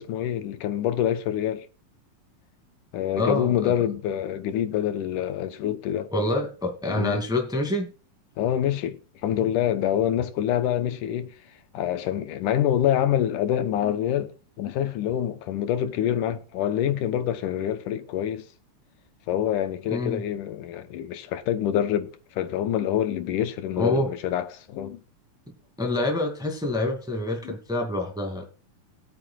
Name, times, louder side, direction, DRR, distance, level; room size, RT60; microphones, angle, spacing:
voice 1, 0.0-1.7 2.9-6.1 6.9-7.2 8.4-11.3 11.7-14.3 14.6-18.5 19.3-25.0 27.4-27.5, left 10 dB, 80° left, 2.4 m, -26 dB
voice 2, 3.2-3.7 6.1-7.9 19.9-20.2 23.8-24.1 25.8-28.5, left 1 dB, ahead, 1.6 m, -26 dB
20.0 x 8.8 x 2.4 m
omnidirectional pair, 3.8 m